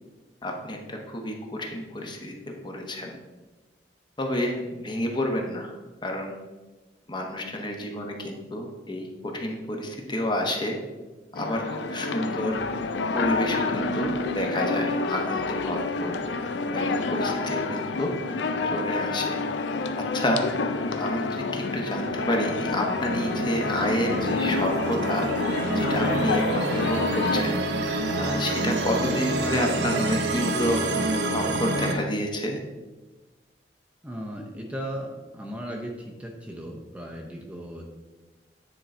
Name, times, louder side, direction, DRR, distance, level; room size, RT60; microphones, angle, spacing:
voice 1, 0.4-2.3 2.6-3.2 4.2-5.7 6.0-6.4 7.1-10.8 11.3-12.6 13.1-16.1 16.7-18.1 18.7-19.4 20.1-20.4 21.0-32.6, left 1 dB, 25° left, 2 dB, 1.0 m, -29 dB
sound 1, 11.3-27.4, left 3 dB, 80° left, 0.5 m, -28 dB
sound 2, 22.0-31.9, right 2 dB, 70° right, 0.9 m, -28 dB
voice 2, 34.0-37.9, equal, 10° right, 0 dB, 0.7 m, -36 dB
9.5 x 3.8 x 4.3 m, 1.2 s
head